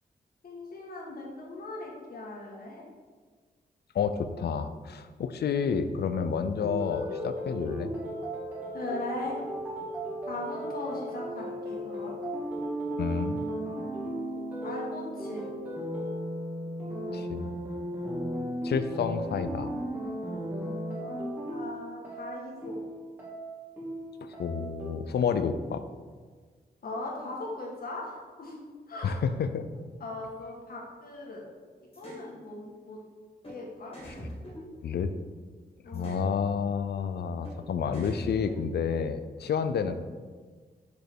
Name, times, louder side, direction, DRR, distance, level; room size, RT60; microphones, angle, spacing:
voice 1, 0.4-2.8 8.7-9.4 10.3-12.2 13.1-13.9 14.6-15.5 21.0-22.8 26.8-29.2 30.0-31.4 31.8-33.0 33.5-33.9 35.8-36.2 39.8-39.9, left 2 dB, 65° left, -2 dB, 1.7 m, -39 dB
voice 2, 3.9-7.9 13.0-13.5 17.1-17.7 18.6-19.8 24.2-25.8 29.0-29.6 34.8-35.1 35.9-39.9, left 6 dB, 80° left, 10 dB, 0.5 m, -30 dB
sound 1, 6.6-24.9, right 1 dB, 10° right, 2.0 m, -35 dB
sound 2, 31.9-32.2 33.4-33.6 33.9-35.3 35.9-36.3 37.4-37.6 37.9-39.0, equal, 35° left, 2.2 m, -43 dB
6.3 x 5.3 x 4.5 m, 1.5 s
wide cardioid pair, 155°, 17 cm